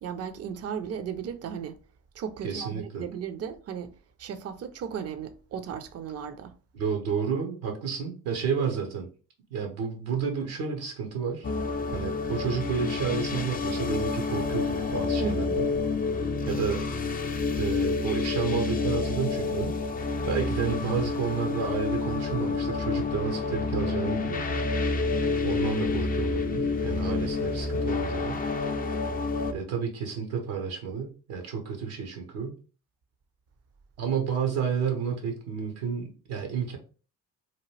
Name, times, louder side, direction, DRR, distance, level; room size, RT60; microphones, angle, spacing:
voice 1, 0.0-1.8 2.1-3.9 4.2-6.5 15.2-15.6, right 7 dB, 35° right, 0.5 m, -35 dB
voice 2, 2.4-3.0 6.7-9.1 9.5-11.5 11.9-15.7 16.5-16.8 17.5-19.8 20.2-24.7 25.4-28.4 29.5-32.5 34.0-36.8, right 6 dB, 75° right, 0.9 m, -31 dB
sound 1, 11.4-29.5, left 4 dB, 20° left, 0.4 m, -29 dB
2.9 x 2.3 x 3.1 m
hypercardioid pair, 45°, 45 cm